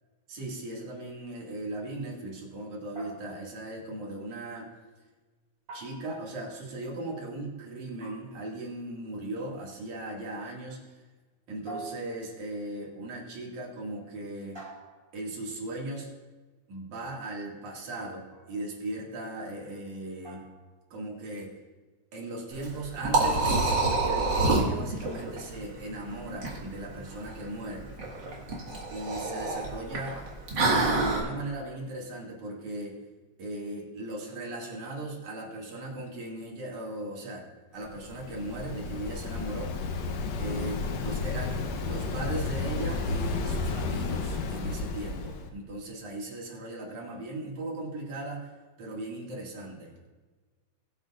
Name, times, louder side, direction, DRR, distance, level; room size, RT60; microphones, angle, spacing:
voice 1, 0.3-4.7 5.7-11.0 11.5-14.6 15.1-16.1 16.7-20.5 20.9-21.5 22.1-27.9 28.9-30.3 30.7-32.9 33.4-37.5 37.7-39.8 40.4-48.5 48.8-49.9, right 1 dB, 80° right, -3 dB, 3.6 m, -38 dB
sound 1, 3.0-3.7 5.7-6.5 8.0-8.6 10.0-10.5 11.7-12.6 14.6-15.4 18.3-18.7 20.2-20.7, right 2 dB, 20° right, 3.0 m, -46 dB
Liquid, 22.5-31.2, right 3 dB, 40° right, 2.3 m, -28 dB
Waves surf, 37.8-45.5, left 4 dB, 70° left, 2.0 m, -32 dB
21.0 x 8.1 x 2.5 m, 1.3 s
omnidirectional pair, 3.4 m